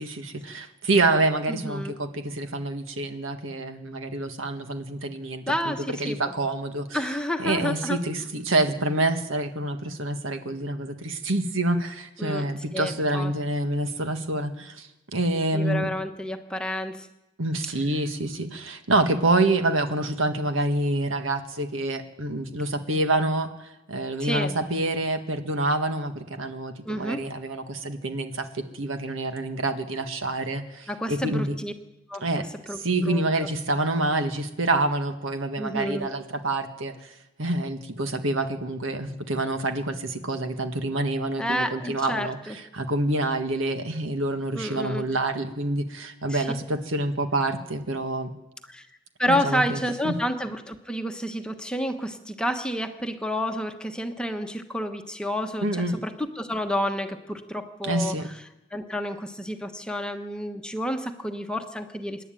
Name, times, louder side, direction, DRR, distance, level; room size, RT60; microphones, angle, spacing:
voice 1, 0.0-7.0 7.4-15.9 17.4-31.6 32.2-32.4 32.8-37.1 37.4-48.3 49.3-50.2 55.6-56.0 57.8-58.3, right 2 dB, 80° right, 7 dB, 1.7 m, -27 dB
voice 2, 1.5-1.9 5.5-6.3 6.9-8.0 12.2-13.3 15.5-17.1 24.2-24.6 26.9-27.2 30.9-31.7 32.1-32.2 32.7-33.2 35.6-36.1 41.4-42.5 44.5-45.0 46.3-46.5 48.7-48.9 49.2-58.1 58.7-62.2, equal, 5° left, 5 dB, 1.1 m, -30 dB
26.5 x 11.0 x 9.1 m, 0.95 s
head